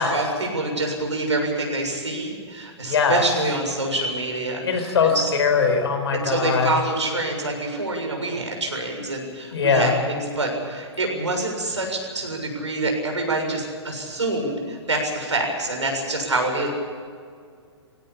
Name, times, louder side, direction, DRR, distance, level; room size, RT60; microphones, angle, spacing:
voice 1, 0.0-5.3 6.1-16.7, right 2 dB, 85° right, 2 dB, 7.0 m, -26 dB
voice 2, 2.9-3.2 4.6-6.7 9.5-10.0, left 5 dB, 65° left, 6 dB, 4.7 m, -21 dB
21.5 x 17.5 x 8.7 m, 2.1 s
figure-of-eight pair, 110°, 15 cm